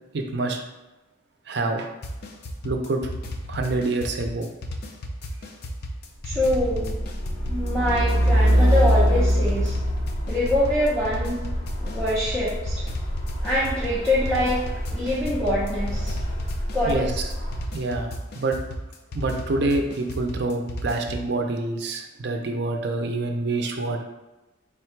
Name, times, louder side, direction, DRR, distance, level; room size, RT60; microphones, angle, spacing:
voice 1, 0.1-0.6 1.5-1.9 2.6-3.0 3.5-4.5 16.8-17.1 17.7-18.6 19.1-24.0, right 2 dB, 55° right, 4 dB, 0.5 m, -26 dB
sound 1, 2.0-21.3, equal, 50° left, 0.4 m, -34 dB
voice 2, 6.2-6.9 7.5-9.7 10.3-11.4 11.8-12.8 13.4-14.6 14.9-16.1 16.7-17.1, left 1 dB, 5° left, -10 dB, 0.6 m, -24 dB
Truck, 6.3-17.7, equal, 80° left, 1.2 m, -25 dB
3.6 x 2.2 x 4.4 m, 1.0 s
head